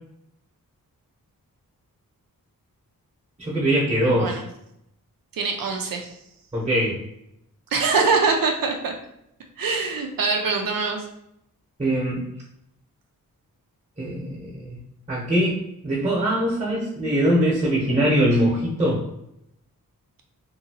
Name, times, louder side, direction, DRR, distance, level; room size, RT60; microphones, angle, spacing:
voice 1, 3.4-4.4 6.5-7.0 11.8-12.2 14.0-14.8 15.1-19.0, right 1 dB, 20° right, -5 dB, 0.9 m, -22 dB
voice 2, 4.1-4.4 5.3-6.2 7.7-8.9 9.6-11.0, right 4 dB, 75° right, 3 dB, 0.5 m, -23 dB
2.8 x 2.7 x 2.8 m, 0.80 s
wide cardioid pair, 75°, 35 cm